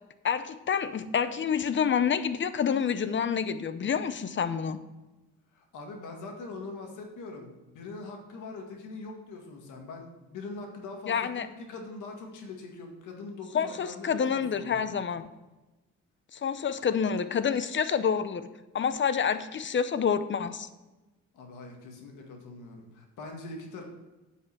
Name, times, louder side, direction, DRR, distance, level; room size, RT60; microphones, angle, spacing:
voice 1, 0.2-4.8 11.1-11.5 13.5-15.3 16.3-18.5 18.7-20.7, left 7 dB, 40° left, 12 dB, 0.7 m, -28 dB
voice 2, 5.5-14.8 21.3-23.8, left 3 dB, 80° left, 2 dB, 2.0 m, -42 dB
9.5 x 5.6 x 6.0 m, 1.1 s
cardioid pair, 90°, 30 cm